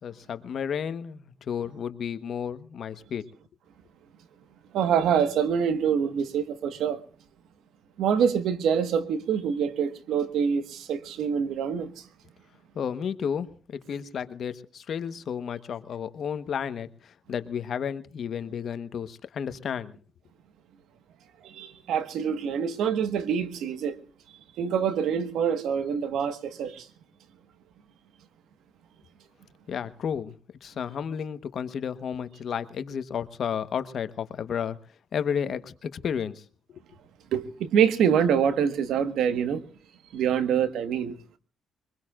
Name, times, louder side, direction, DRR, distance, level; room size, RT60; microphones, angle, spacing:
voice 1, 0.0-3.2 12.7-20.0 29.7-30.3 30.6-34.8 35.1-36.4 36.7-36.8, left 7 dB, 60° left, 1.1 m, -32 dB
voice 2, 4.7-7.0 8.0-12.1 21.4-24.0 24.6-26.9 37.3-39.6 40.1-41.1, right 7 dB, 80° right, 1.5 m, -25 dB
23.0 x 21.5 x 2.5 m
cardioid pair, 90°, 0 cm